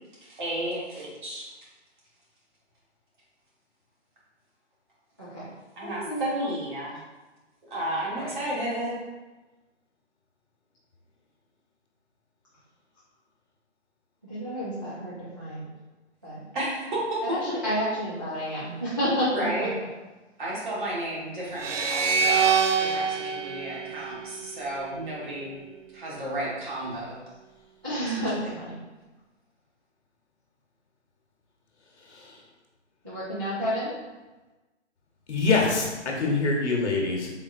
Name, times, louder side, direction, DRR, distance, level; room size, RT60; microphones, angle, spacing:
voice 1, 0.2-1.5 5.8-7.0 7.6-9.0 16.5-17.0 19.3-19.8 20.4-22.5 22.8-25.6 25.9-27.2 28.1-28.5, right 1 dB, 40° right, -6 dB, 1.4 m, -33 dB
voice 2, 5.2-5.5 5.8-6.5 8.1-8.3 14.3-15.7 16.2-16.4 17.2-19.5 27.8-28.8 33.0-33.9, equal, 20° right, -12 dB, 0.4 m, -30 dB
sound 1, 21.5-24.8, right 6 dB, 85° right, 0.5 m, -25 dB
voice 3, 35.3-37.3, left 3 dB, 70° left, 0 dB, 1.0 m, -25 dB
3.9 x 3.7 x 2.5 m, 1.1 s
hypercardioid pair, 155°, 36 cm